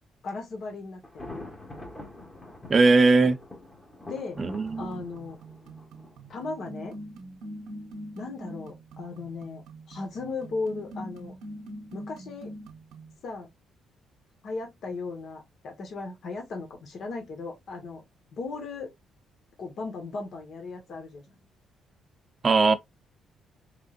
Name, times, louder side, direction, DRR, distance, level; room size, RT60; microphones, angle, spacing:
voice 1, 0.2-1.4 4.0-4.4 4.8-5.4 6.3-7.0 8.1-11.3 11.9-12.5 13.2-13.5 14.4-18.0 18.3-18.9 19.6-21.2, left 3 dB, 65° left, 1.4 m, -36 dB
Thunder, 1.0-6.8, left 2 dB, 20° left, 1.4 m, -44 dB
voice 2, 2.7-3.4 4.4-5.0 22.4-22.7, right 3 dB, 35° right, 0.6 m, -20 dB
sound 1, 4.7-13.2, right 1 dB, 85° right, 0.8 m, -43 dB
3.6 x 3.4 x 2.5 m
cardioid pair, 90°, 0 cm